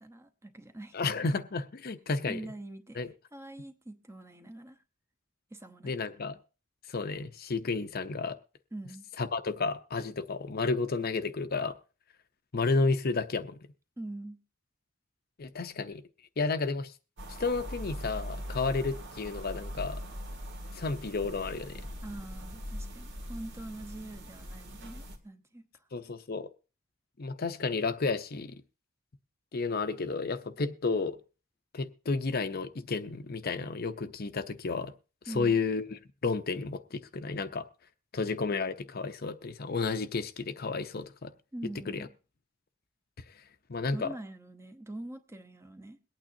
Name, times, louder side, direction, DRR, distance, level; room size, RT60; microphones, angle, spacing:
voice 1, 0.0-1.0 2.3-3.0 3.3-4.8 5.5-5.9 8.7-9.1 14.0-14.4 22.0-25.8 35.3-35.6 41.5-42.1 43.9-46.0, right 1 dB, 15° right, 0.8 m, -44 dB
voice 2, 0.9-2.4 3.0-3.1 5.8-6.4 6.9-8.4 9.2-11.7 12.5-13.6 15.4-16.0 16.4-16.9 17.4-20.0 20.7-21.8 25.9-26.5 27.2-28.6 29.5-31.2 31.7-34.9 35.3-37.7 38.1-41.3 41.9-42.1 43.7-44.1, left 4 dB, 50° left, 0.7 m, -32 dB
sound 1, 17.2-25.2, equal, 65° right, 1.8 m, -41 dB
22.5 x 8.9 x 2.7 m
head